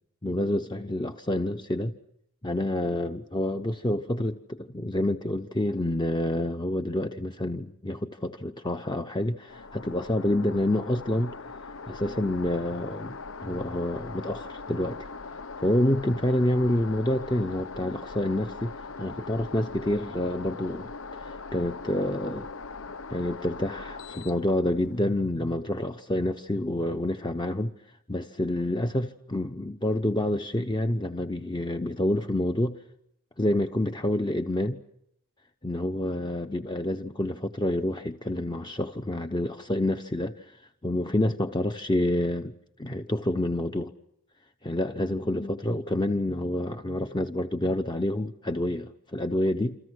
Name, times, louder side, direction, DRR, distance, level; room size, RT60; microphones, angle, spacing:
voice 1, 0.2-1.9 2.4-11.4 11.9-15.1 15.6-20.9 21.2-22.5 23.1-27.7 28.1-32.8 33.4-34.8 35.6-42.5 42.8-43.9 44.6-49.8, left 1 dB, 20° left, 0.9 m, -28 dB
sound 1, 9.5-25.0, left 4 dB, 65° left, 1.0 m, -41 dB
28.5 x 27.0 x 6.4 m
head